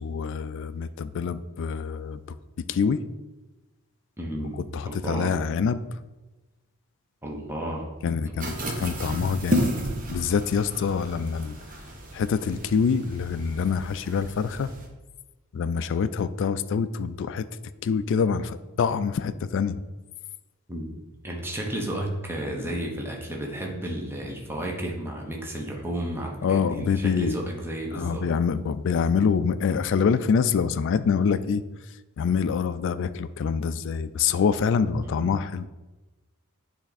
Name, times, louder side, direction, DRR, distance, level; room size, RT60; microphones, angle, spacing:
voice 1, 0.0-2.2 2.7-3.0 4.7-5.8 8.0-9.7 10.1-11.6 12.1-14.7 15.5-17.5 17.8-19.8 26.4-27.4 27.9-31.6 32.2-35.7, left 6 dB, 55° left, 13 dB, 0.3 m, -25 dB
voice 2, 4.2-5.4 7.2-7.9 8.3-8.9 20.7-20.9 21.2-28.3 35.0-35.4, right 1 dB, 10° right, -1 dB, 0.9 m, -33 dB
sound 1, 8.4-14.9, equal, 40° right, 1.0 m, -32 dB
8.8 x 3.4 x 4.0 m, 1.1 s
head